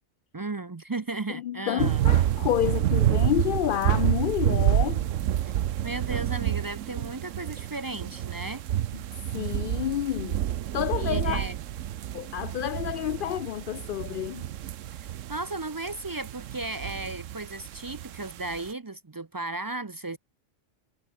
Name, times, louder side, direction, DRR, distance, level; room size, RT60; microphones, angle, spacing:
voice 1, 0.3-2.0 5.8-8.6 11.0-11.6 14.9-20.2, right 2 dB, 30° right, 0.3 m, -35 dB
voice 2, 1.3-5.0 8.9-9.0 9.3-10.4 10.7-11.5 12.1-14.5, left 12 dB, 60° left, 0.6 m, -29 dB
sound 1, 1.8-18.7, right 12 dB, 85° right, 1.1 m, -28 dB
omnidirectional pair, 1.3 m